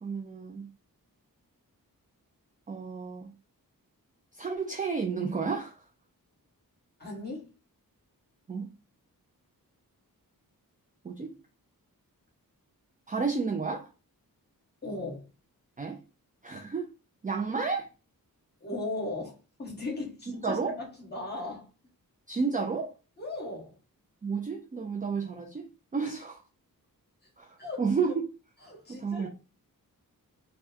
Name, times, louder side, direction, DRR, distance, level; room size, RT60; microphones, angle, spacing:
voice 1, 0.0-0.7 2.7-3.3 4.4-5.8 8.5-8.7 11.0-11.3 13.1-13.9 15.8-16.0 16.4-16.9 17.2-17.9 20.4-20.8 22.3-22.9 24.2-25.6 25.9-26.4 27.4-28.1 29.0-29.3, right 5 dB, 25° right, 0.3 m, -31 dB
voice 2, 7.0-7.5 14.8-15.3 18.6-21.7 23.2-23.8 27.6-28.2 28.6-29.3, left 2 dB, 30° left, 1.2 m, -37 dB
3.5 x 2.2 x 2.6 m
wide cardioid pair, 150°, 36 cm